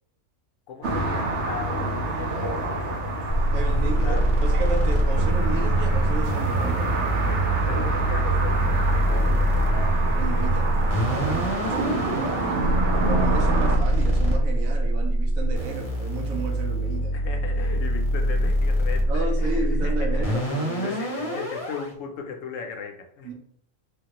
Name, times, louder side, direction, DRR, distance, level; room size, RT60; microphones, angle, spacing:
voice 1, 0.7-3.7 4.0-4.3 7.2-9.9 17.1-20.4 20.8-23.3, left 6 dB, 70° left, 3 dB, 0.9 m, -37 dB
sound 1, 0.8-13.8, right 2 dB, 60° right, 1.1 m, -28 dB
sound 2, 3.3-21.9, right 1 dB, 30° left, 0.7 m, -24 dB
voice 2, 3.5-7.0 10.1-11.6 11.9-17.1 19.1-21.4 23.2-23.3, right 3 dB, 80° right, 2 dB, 1.0 m, -33 dB
sound 3, 5.1-11.5, right 4 dB, 30° right, 1.0 m, -29 dB
3.5 x 2.1 x 2.9 m, 0.66 s
omnidirectional pair, 1.4 m